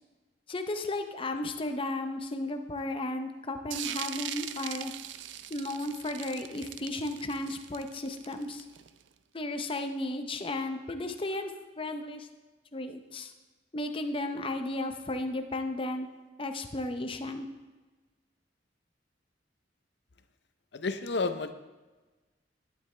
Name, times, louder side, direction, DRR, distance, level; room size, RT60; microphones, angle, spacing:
voice 1, 0.5-4.9 5.5-8.6 9.3-12.3 12.7-13.3 13.7-16.1 16.4-17.5, left 2 dB, 30° left, 7 dB, 0.7 m, -34 dB
sound 1, 3.7-9.0, right 11 dB, 75° right, 0.4 m, -40 dB
voice 2, 20.7-21.5, left 3 dB, 65° left, 10 dB, 0.7 m, -31 dB
11.5 x 9.4 x 3.3 m, 1.2 s
head